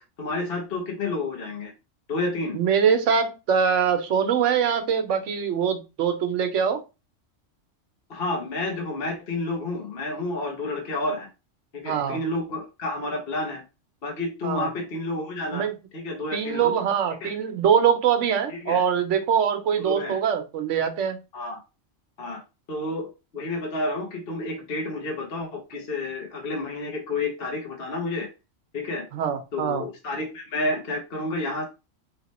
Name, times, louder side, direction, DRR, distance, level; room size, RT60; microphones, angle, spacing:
voice 1, 0.2-1.7 2.1-2.6 8.1-11.3 11.7-13.6 14.0-15.7 15.9-16.7 17.2-17.3 18.5-18.8 19.8-20.2 21.3-21.6 22.2-22.4 22.7-23.1 23.3-28.3 28.7-29.0 29.5-31.7, left 2 dB, 50° left, 1.2 m, -30 dB
voice 2, 2.5-6.8 11.8-12.2 14.4-14.7 15.5-15.7 16.3-21.2 29.1-29.8, right 7 dB, 75° right, 1.1 m, -23 dB
3.3 x 2.9 x 4.1 m
omnidirectional pair, 1.3 m